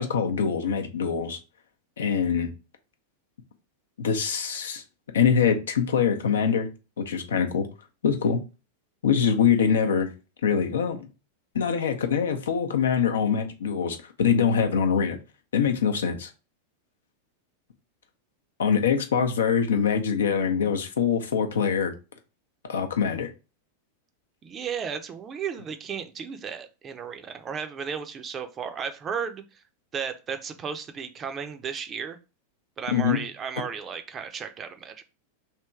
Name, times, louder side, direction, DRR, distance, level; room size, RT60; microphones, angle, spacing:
voice 1, 0.0-1.4 2.0-2.5 4.0-4.8 5.1-6.7 7.0-7.7 8.0-8.4 9.0-10.1 10.4-11.1 11.5-15.2 15.5-16.3 18.6-21.9 22.7-23.3 32.9-33.2, left 7 dB, 65° left, 6 dB, 0.6 m, -24 dB
voice 2, 24.4-29.6 29.9-32.2 32.8-35.0, right 6 dB, 25° right, 8 dB, 0.5 m, -34 dB
3.4 x 2.9 x 4.4 m, 0.31 s
figure-of-eight pair, 90°, 0 cm